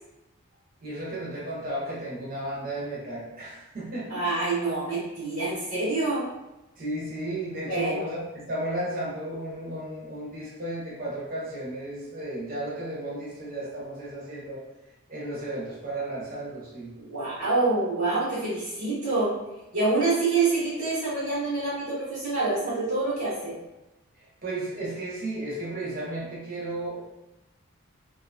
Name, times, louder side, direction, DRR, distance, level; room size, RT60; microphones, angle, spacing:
voice 1, 0.8-4.2 6.8-14.6 15.1-16.9 24.2-27.0, right 1 dB, 40° right, -6 dB, 0.8 m, -34 dB
voice 2, 4.1-6.2 7.7-8.0 17.0-19.3 19.7-23.5, right 3 dB, 80° right, -11 dB, 1.0 m, -26 dB
2.6 x 2.3 x 2.5 m, 0.97 s
head